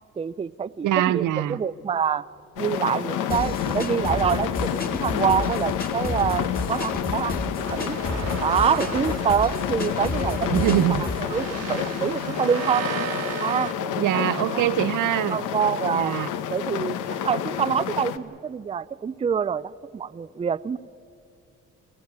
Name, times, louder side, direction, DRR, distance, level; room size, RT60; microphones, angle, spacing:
voice 1, 0.2-2.2 2.6-8.0 8.4-10.5 11.0-12.9 13.4-14.2 14.5-14.7 15.3-16.2 16.5-20.8, right 7 dB, 20° right, 15 dB, 0.4 m, -26 dB
voice 2, 0.8-1.6 10.5-11.1 14.0-15.4 15.9-16.3, right 13 dB, 80° right, 14 dB, 0.8 m, -23 dB
sound 1, 2.6-18.2, left 9 dB, 85° left, 1.1 m, -29 dB
sound 2, 3.3-11.3, left 2 dB, 30° left, 2.1 m, -32 dB
sound 3, 7.6-13.7, right 7 dB, 55° right, 1.2 m, -35 dB
29.0 x 13.5 x 9.7 m, 2.5 s
cardioid pair, 90°, 30 cm